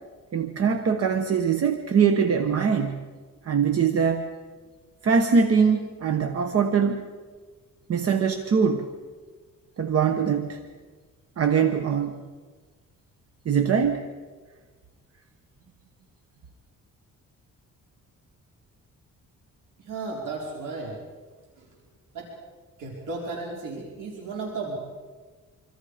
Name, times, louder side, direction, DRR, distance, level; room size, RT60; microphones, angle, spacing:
voice 1, 0.3-3.0 3.4-4.3 5.0-7.1 7.9-8.9 9.8-10.6 11.4-12.2 13.4-14.1, right 6 dB, 50° right, 7 dB, 1.3 m, -22 dB
voice 2, 19.8-21.0 21.6-21.8 22.1-22.3 22.8-24.8, right 3 dB, 80° right, -3 dB, 5.2 m, -34 dB
26.5 x 26.0 x 5.1 m, 1.4 s
cardioid pair, 145°, 31 cm